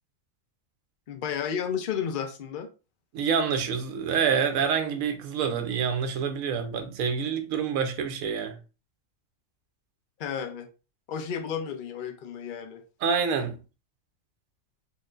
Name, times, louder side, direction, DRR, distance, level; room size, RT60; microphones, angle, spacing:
voice 1, 1.1-2.7 10.2-10.7 11.1-12.8, left 7 dB, 55° left, 0.6 m, -32 dB
voice 2, 3.1-8.6 13.0-13.6, right 6 dB, 80° right, 1.1 m, -27 dB
4.4 x 3.1 x 2.3 m
omnidirectional pair, 1.4 m